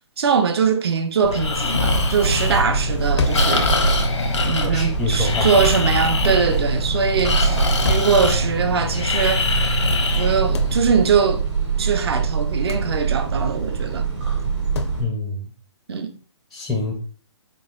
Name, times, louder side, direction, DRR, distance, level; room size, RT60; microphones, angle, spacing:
voice 1, 0.2-3.7 4.4-9.5 10.2-11.4 11.8-14.1 15.9-16.1, right 6 dB, 60° right, 0.6 m, -22 dB
Breathing, 1.2-10.9, left 3 dB, 90° left, 0.9 m, -23 dB
sound 1, 1.8-15.0, right 6 dB, 80° right, 1.8 m, -24 dB
sound 2, 3.2-3.6 5.4-5.7 7.8-8.2 10.5-10.8 12.7-12.9 14.7-15.0, left 3 dB, 70° left, 0.5 m, -26 dB
voice 2, 4.6-5.5 15.0-15.5 16.5-17.0, left 3 dB, ahead, 0.4 m, -26 dB
3.8 x 3.8 x 2.4 m
hypercardioid pair, 150°, 15 cm